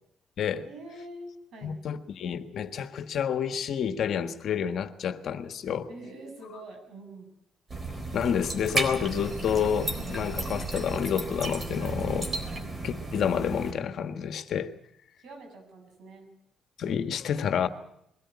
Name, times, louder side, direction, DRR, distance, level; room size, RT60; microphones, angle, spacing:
voice 1, 0.6-1.8 5.9-7.3 11.8-12.1 12.4-12.8 15.2-16.3, right 1 dB, 70° right, 6.5 m, -45 dB
voice 2, 1.6-5.9 8.1-12.3 12.8-14.7 16.8-17.7, left 8 dB, 65° left, 1.5 m, -29 dB
sound 1, 7.7-13.7, right 2 dB, 30° right, 4.0 m, -33 dB
22.0 x 13.5 x 9.7 m
cardioid pair, 90°, 0 cm